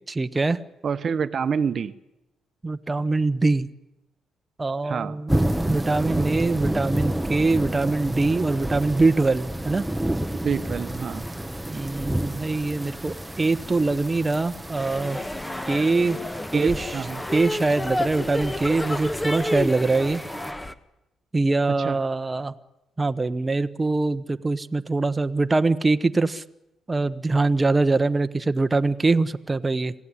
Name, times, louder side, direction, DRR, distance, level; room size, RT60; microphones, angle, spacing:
voice 1, 0.1-0.6 2.6-3.7 4.6-5.3 5.6-9.8 11.7-15.2 15.7-16.2 16.5-17.0 17.3-20.2 21.3-22.5 23.0-26.4 26.9-29.9, right 3 dB, 20° right, 9 dB, 1.0 m, -23 dB
voice 2, 0.8-1.9 4.8-5.2 10.4-11.3 16.5-17.2 21.8-22.0, right 6 dB, 50° right, 12 dB, 1.0 m, -27 dB
sound 1, 5.3-20.5, right 1 dB, 5° right, 1.1 m, -30 dB
sound 2, 14.7-20.7, left 1 dB, 15° left, 1.4 m, -30 dB
26.5 x 17.0 x 9.9 m, 0.92 s
cardioid pair, 90°, 0 cm